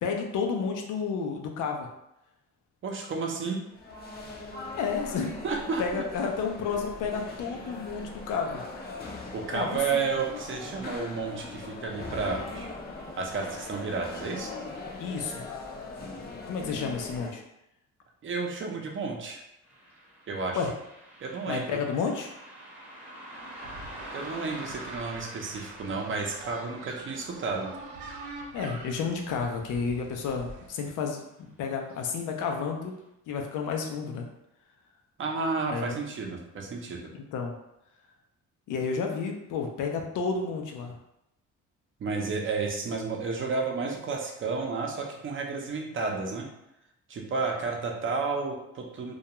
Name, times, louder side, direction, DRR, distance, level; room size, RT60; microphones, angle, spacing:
voice 1, 0.0-1.9 4.8-5.3 5.8-8.6 9.5-10.0 15.0-15.5 16.5-17.4 20.5-20.7 21.5-22.3 28.5-32.9 33.3-34.3 35.7-36.0 37.1-37.6 38.7-40.9, left 5 dB, 85° left, 2 dB, 0.5 m, -31 dB
voice 2, 2.8-3.6 5.4-6.0 9.3-12.7 13.1-14.5 18.2-19.4 20.3-20.6 21.2-21.8 24.1-27.7 35.2-37.1 42.0-46.5 47.1-49.2, right 4 dB, 40° right, 1 dB, 0.6 m, -31 dB
sound 1, 3.7-17.3, left 3 dB, 30° left, 0.5 m, -41 dB
Car passing by, 19.6-30.5 30.8-30.9 31.8-32.0 32.4-32.5 33.0-33.1, right 1 dB, 5° right, 0.8 m, -47 dB
sound 2, 23.3-30.7, right 3 dB, 85° right, 0.5 m, -45 dB
2.3 x 2.2 x 2.9 m, 0.85 s
cardioid pair, 90°, 30 cm